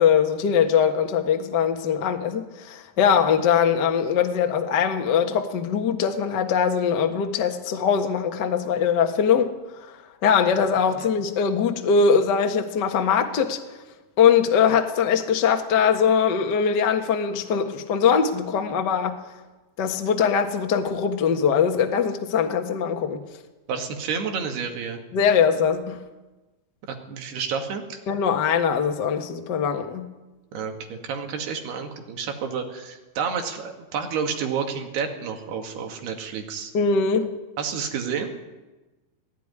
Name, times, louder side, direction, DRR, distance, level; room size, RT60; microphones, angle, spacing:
voice 1, 0.0-9.9 10.2-13.6 14.2-19.2 19.8-23.2 25.1-26.0 28.1-30.1 36.7-37.3, left 7 dB, 60° left, 5 dB, 1.1 m, -21 dB
voice 2, 23.7-25.0 26.9-28.0 30.5-36.7 37.6-38.3, right 6 dB, 90° right, 4 dB, 4.2 m, -30 dB
18.0 x 15.5 x 9.8 m, 1.1 s
omnidirectional pair, 4.5 m